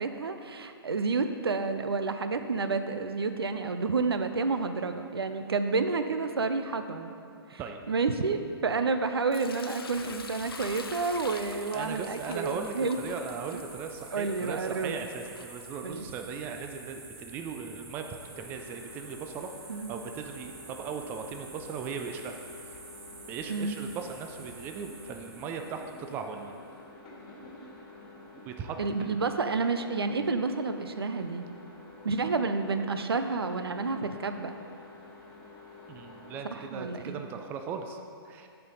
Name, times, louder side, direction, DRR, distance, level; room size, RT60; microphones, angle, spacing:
voice 1, 0.0-7.1 7.5-7.6 7.9-13.0 13.5-13.6 14.1-15.0 15.8-16.0 19.7-19.9 23.5-23.8 28.8-31.5 32.0-34.6 36.4-37.2, right 4 dB, 75° right, 8 dB, 0.5 m, -30 dB
Sink (filling or washing) / Liquid, 9.3-16.2, left 4 dB, 65° left, 0.6 m, -46 dB
sound 1, 9.9-26.6, right 3 dB, 35° right, 1.4 m, -49 dB
voice 2, 11.7-22.8 23.3-26.5 28.5-29.2 35.9-38.0 38.2-38.5, right 6 dB, 15° right, 5 dB, 0.3 m, -38 dB
sound 2, 18.2-36.5, left 2 dB, 35° left, 1.7 m, -50 dB
10.0 x 4.6 x 3.9 m, 2.4 s
figure-of-eight pair, 120°, 13 cm